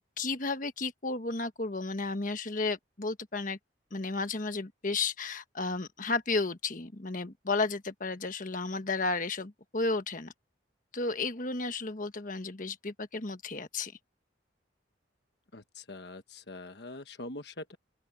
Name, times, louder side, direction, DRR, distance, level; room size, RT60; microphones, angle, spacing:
voice 1, 0.2-3.6 3.9-10.3 10.9-13.9, left 3 dB, 45° left, 1.3 m, -33 dB
voice 2, 15.5-17.8, left 2 dB, 65° left, 1.3 m, -43 dB
open air
head